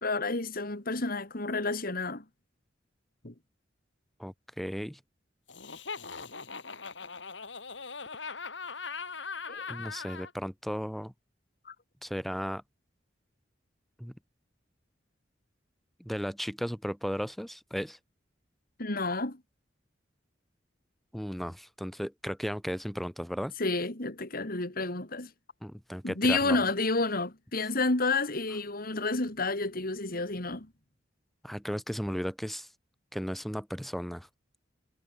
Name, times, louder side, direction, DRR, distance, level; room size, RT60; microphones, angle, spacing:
voice 1, 0.0-2.2 3.2-3.3 9.5-9.7 11.6-11.7 18.8-19.4 23.6-25.3 26.0-30.7, left 3 dB, 55° left, 3.0 m, -30 dB
voice 2, 4.2-5.0 9.7-11.1 12.0-12.6 14.0-14.1 16.0-18.0 21.1-23.5 25.6-26.6 31.4-32.7 33.1-34.3, equal, ahead, 3.5 m, -35 dB
Laughter, 5.5-10.3, left 5 dB, 85° left, 4.2 m, -40 dB
head